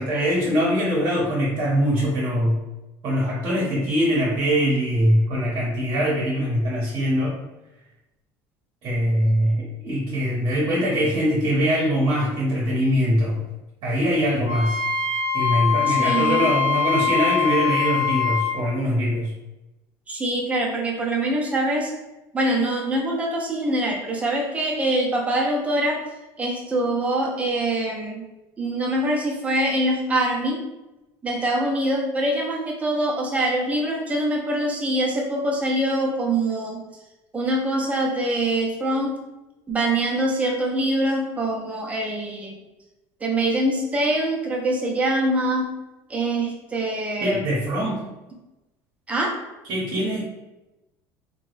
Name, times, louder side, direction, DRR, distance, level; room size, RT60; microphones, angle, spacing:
voice 1, 0.0-2.6 3.0-7.4 8.8-13.4 13.8-14.8 15.3-19.3 47.2-48.0 49.7-50.2, equal, 50° right, -4 dB, 0.9 m, -22 dB
Wind instrument woodwind instrument, 14.4-18.6, left 6 dB, 90° right, 0.6 m, -23 dB
voice 2, 15.9-16.5 20.1-21.9 22.3-26.0 26.4-28.2 28.6-30.6 31.2-36.8 37.3-39.2 39.7-42.6 43.2-45.7 46.1-47.5 49.1-49.4, right 1 dB, 15° right, -1 dB, 0.6 m, -24 dB
2.8 x 2.2 x 3.2 m, 0.99 s
cardioid pair, 130°, 9 cm